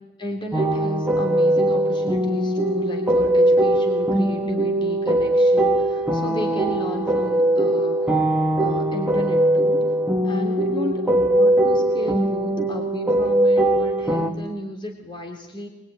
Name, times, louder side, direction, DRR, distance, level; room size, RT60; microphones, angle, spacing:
voice 1, 0.2-8.1 8.6-9.8 10.2-15.7, left 1 dB, 25° left, 1 dB, 3.1 m, -33 dB
sound 1, 0.5-14.3, right 1 dB, 5° right, 1.8 m, -20 dB
24.0 x 22.0 x 9.4 m, 1.0 s
head